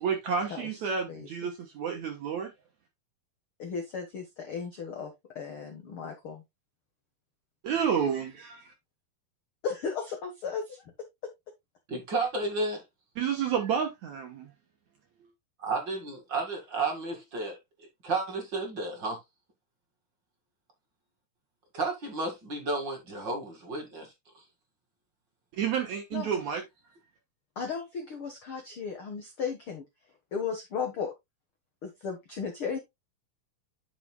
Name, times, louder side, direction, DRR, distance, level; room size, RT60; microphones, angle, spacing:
voice 1, 0.0-2.5 7.6-8.7 13.2-14.5 25.5-26.6, right 7 dB, 65° right, 1.9 m, -30 dB
voice 2, 3.6-6.4 9.6-10.9 26.1-26.3 27.5-29.8 30.3-31.1 31.8-32.8, left 6 dB, 75° left, 1.2 m, -35 dB
voice 3, 11.9-12.8 15.6-19.2 21.7-24.4, right 3 dB, 40° right, 2.0 m, -32 dB
10.5 x 6.2 x 2.3 m
omnidirectional pair, 4.5 m